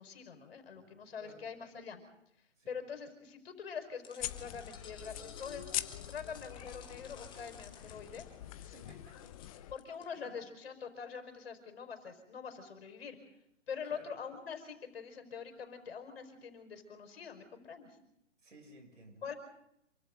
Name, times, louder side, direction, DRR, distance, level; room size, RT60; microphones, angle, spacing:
voice 1, 0.0-2.0 2.7-5.6 6.1-8.3 9.7-13.2 13.7-18.0 19.2-19.3, left 6 dB, 55° left, 7 dB, 5.4 m, -44 dB
sound 1, 4.0-10.1, left 6 dB, 10° left, 2.6 m, -55 dB
sound 2, 4.2-9.8, left 13 dB, 30° left, 1.0 m, -43 dB
voice 2, 8.4-9.3 10.1-10.4 13.8-14.1 18.4-19.2, right 2 dB, 75° right, 4 dB, 7.8 m, -57 dB
27.5 x 25.0 x 4.0 m, 0.77 s
figure-of-eight pair, 135°, 36 cm